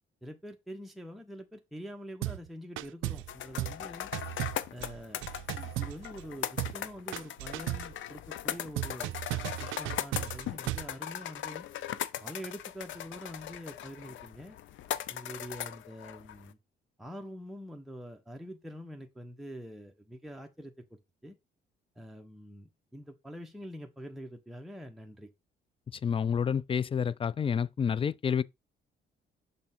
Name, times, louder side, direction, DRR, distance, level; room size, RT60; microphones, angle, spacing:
voice 1, 0.2-4.1 4.7-5.3 5.5-9.1 9.6-11.7 12.2-14.6 15.1-16.6 17.0-21.3 22.0-25.3, equal, ahead, 0.9 m, -45 dB
sound 1, 2.2-2.5 2.8-3.3 3.6-3.8 4.1-6.3 6.6-6.8 7.1-7.9 8.8-10.9, right 16 dB, 80° right, 0.4 m, -36 dB
sound 2, 3.3-16.5, left 11 dB, 75° left, 0.6 m, -39 dB
voice 2, 26.0-28.4, left 7 dB, 30° left, 0.4 m, -29 dB
6.6 x 3.5 x 4.4 m
cardioid pair, 90°, 20 cm